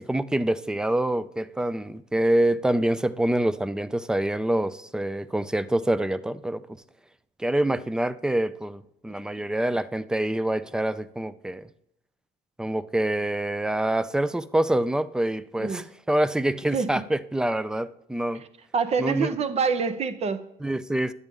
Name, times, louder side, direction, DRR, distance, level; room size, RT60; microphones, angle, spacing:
voice 1, 0.0-6.6 7.4-11.7 12.6-18.4 19.0-19.4 20.6-21.1, right 1 dB, 5° right, 0.3 m, -26 dB
voice 2, 16.7-17.0 18.3-18.5 18.7-20.4, right 5 dB, 40° right, 0.7 m, -26 dB
10.5 x 8.1 x 3.5 m
cardioid pair, 110°, 17 cm